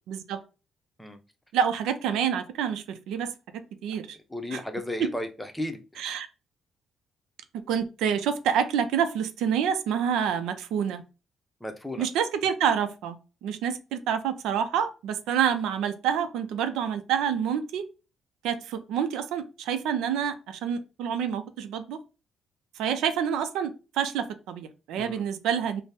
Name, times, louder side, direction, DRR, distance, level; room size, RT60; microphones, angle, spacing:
voice 1, 0.1-0.4 1.5-3.3 3.8-4.2 4.5-4.6 5.0-5.1 6.0-6.3 7.7-11.0 12.0-13.2 13.4-17.9 18.4-22.0 22.8-25.8, right 8 dB, 90° right, 10 dB, 0.4 m, -27 dB
voice 2, 4.3-6.0 11.6-12.1 24.9-25.2, left 1 dB, 5° left, 6 dB, 0.7 m, -34 dB
4.0 x 2.0 x 3.5 m, 0.31 s
cardioid pair, 90°, 0 cm